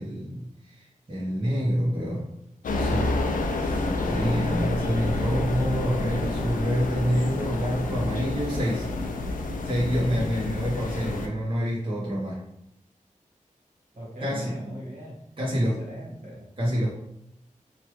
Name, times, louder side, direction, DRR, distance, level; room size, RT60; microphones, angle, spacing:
voice 1, 0.0-2.3 2.8-3.1 3.4-8.9 9.6-12.4 14.2-14.5 15.4-15.8 16.6-16.9, equal, 40° right, -7 dB, 0.9 m, -27 dB
sound 1, 2.6-11.3, left 2 dB, 85° left, 0.4 m, -28 dB
voice 2, 13.9-15.2 15.5-16.5, equal, 65° right, -5 dB, 1.2 m, -39 dB
3.0 x 2.3 x 3.0 m, 0.80 s
wide cardioid pair, 70°, 14 cm